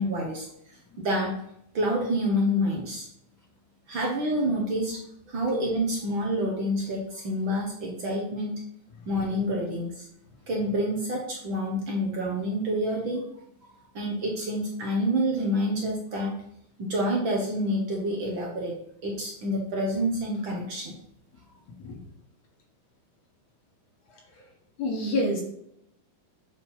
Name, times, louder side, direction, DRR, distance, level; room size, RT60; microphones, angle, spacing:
voice 1, 0.0-1.3 1.7-3.1 3.9-5.0 5.3-8.5 9.1-10.1 10.5-13.2 13.9-16.3 16.8-18.7 19.0-20.9, equal, 65° right, -1 dB, 1.2 m, -28 dB
voice 2, 24.8-25.4, left 1 dB, 55° left, 0 dB, 2.2 m, -28 dB
8.6 x 4.4 x 5.6 m, 0.74 s
omnidirectional pair, 4.1 m